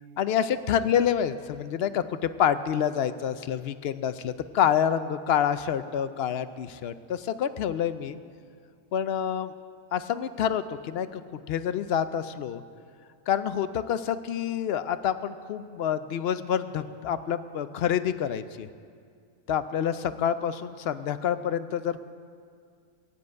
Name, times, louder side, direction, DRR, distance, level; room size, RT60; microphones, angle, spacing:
voice 1, 0.2-8.2 8.9-9.5 9.9-11.2 11.5-12.6 13.3-18.7 19.5-22.0, left 9 dB, 70° left, 12 dB, 0.6 m, -27 dB
15.0 x 7.7 x 9.4 m, 2.2 s
omnidirectional pair, 1.5 m